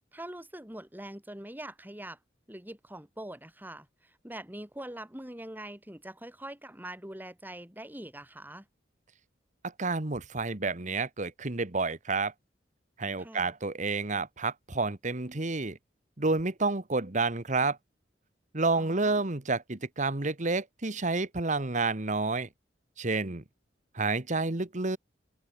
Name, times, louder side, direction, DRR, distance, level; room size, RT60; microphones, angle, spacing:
voice 1, 0.1-2.2 2.5-8.7 13.2-13.5 18.7-19.3, right 1 dB, 10° right, 3.5 m, -43 dB
voice 2, 9.8-12.3 13.0-15.8 16.2-17.8 18.5-22.5 23.0-23.4 23.9-25.0, right 3 dB, 40° right, 1.4 m, -29 dB
open air
head